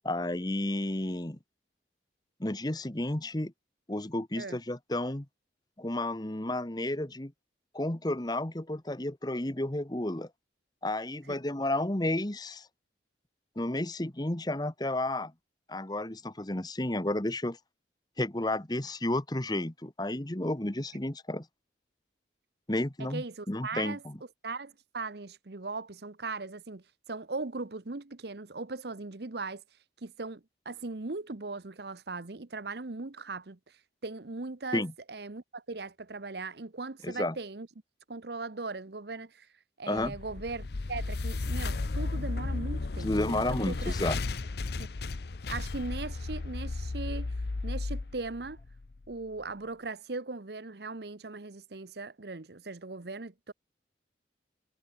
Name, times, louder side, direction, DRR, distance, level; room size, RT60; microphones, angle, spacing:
voice 1, 0.0-1.4 2.4-3.5 3.9-5.3 5.8-7.3 7.7-10.3 10.8-12.7 13.6-15.3 15.7-17.6 18.2-21.5 22.7-24.2 34.7-34.9 37.0-37.4 39.9-40.1 43.0-44.2, left 1 dB, 20° left, 1.2 m, -32 dB
voice 2, 23.0-24.0 24.4-29.6 30.0-37.7 38.1-39.5 39.8-43.9 44.8-44.9 45.5-47.3 47.6-48.6 49.1-53.5, right 3 dB, 60° right, 1.0 m, -39 dB
sound 1, 40.0-49.1, left 3 dB, 60° left, 0.7 m, -34 dB
head